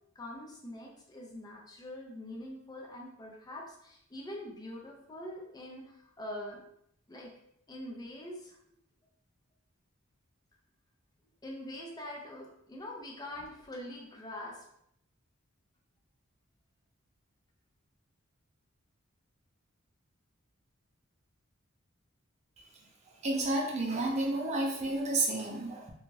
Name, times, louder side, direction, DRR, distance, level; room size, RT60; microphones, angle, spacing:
voice 1, 0.2-6.6 7.1-7.3 7.7-8.6 11.4-14.6, left 1 dB, 20° left, -2 dB, 0.4 m, -44 dB
voice 2, 23.2-25.9, right 2 dB, 35° right, 0 dB, 0.5 m, -31 dB
2.6 x 2.3 x 3.1 m, 0.73 s
head